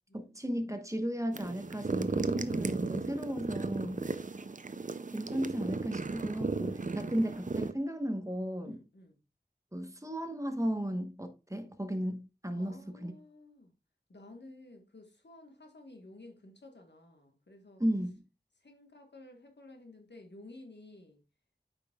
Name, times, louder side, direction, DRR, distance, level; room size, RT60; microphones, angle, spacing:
voice 1, 0.1-4.1 5.1-8.8 9.7-13.1 17.8-18.1, equal, 15° right, 1.1 m, -35 dB
sound 1, 1.3-7.7, right 4 dB, 45° right, 0.5 m, -35 dB
voice 2, 8.6-9.2 12.5-13.7 14.1-17.8 18.6-21.2, left 2 dB, 80° left, 1.5 m, -53 dB
8.8 x 5.4 x 2.4 m
wide cardioid pair, 40°, 18 cm